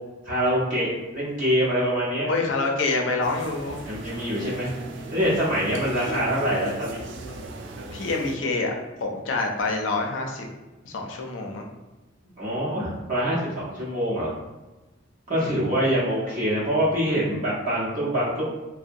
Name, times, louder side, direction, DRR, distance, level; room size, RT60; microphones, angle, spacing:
voice 1, 0.3-2.3 3.9-4.7 5.1-7.0 12.4-14.3 15.3-18.4, equal, 45° right, -8 dB, 0.8 m, -25 dB
voice 2, 2.3-3.8 6.0-6.2 7.9-8.7 9.0-10.4 10.9-11.7 15.3-15.6, left 3 dB, 80° left, 1 dB, 0.5 m, -27 dB
sound 1, 3.2-8.4, right 2 dB, 65° right, 0.3 m, -39 dB
2.7 x 2.1 x 2.5 m, 1.1 s
head